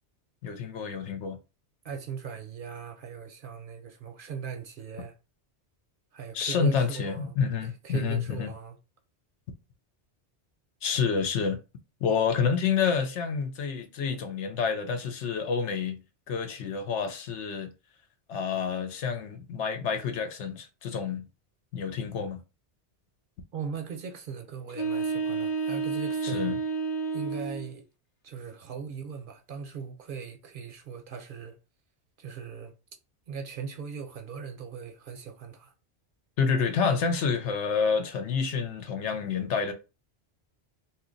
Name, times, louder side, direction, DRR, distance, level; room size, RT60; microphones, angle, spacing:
voice 1, 0.4-1.4 6.3-8.5 10.8-11.6 12.0-16.0 16.3-17.7 18.3-21.2 21.7-22.4 26.2-26.6 36.4-39.7, left 6 dB, 85° left, 0.9 m, -28 dB
voice 2, 1.8-5.2 6.1-7.4 7.8-8.8 23.5-26.5 27.1-27.9 28.2-31.6 32.2-32.7 33.3-35.7, right 6 dB, 60° right, 0.6 m, -39 dB
sound 1, 24.7-27.7, right 4 dB, 45° left, 0.8 m, -30 dB
2.7 x 2.4 x 3.8 m
omnidirectional pair, 1.2 m